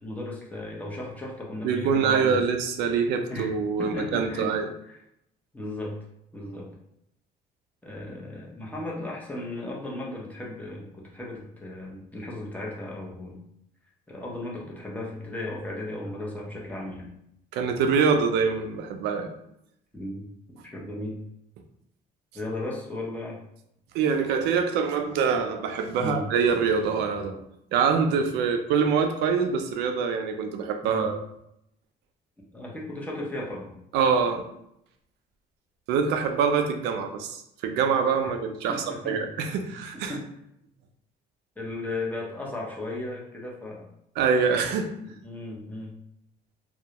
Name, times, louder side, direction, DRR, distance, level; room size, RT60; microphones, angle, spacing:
voice 1, 0.0-2.4 3.3-3.5 3.8-4.5 4.9-5.0 5.5-5.9 6.3-6.7 7.8-13.4 14.1-17.1 19.9-20.2 20.7-21.2 22.3-23.4 26.0-26.3 30.8-31.1 32.5-33.7 38.7-39.3 40.1-40.2 41.6-43.9 45.0-46.0, left 1 dB, 10° left, -3 dB, 0.6 m, -35 dB
voice 2, 1.6-4.7 17.5-19.3 23.9-27.4 27.7-31.3 33.9-34.4 35.9-40.1 44.2-44.9, right 6 dB, 85° right, 6 dB, 0.4 m, -25 dB
2.2 x 2.0 x 2.8 m, 0.77 s
cardioid pair, 110°, 17 cm